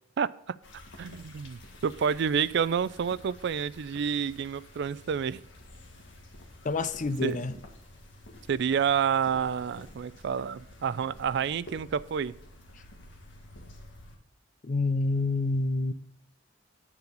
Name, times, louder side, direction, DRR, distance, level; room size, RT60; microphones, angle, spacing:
sound 1, 0.6-14.2, left 1 dB, 70° left, 1.7 m, -50 dB
voice 1, 1.0-5.4 7.2-7.4 8.5-12.3, right 7 dB, 65° right, 0.4 m, -29 dB
voice 2, 6.6-7.5 14.6-15.9, left 3 dB, 40° left, 0.5 m, -28 dB
9.6 x 7.0 x 4.0 m
head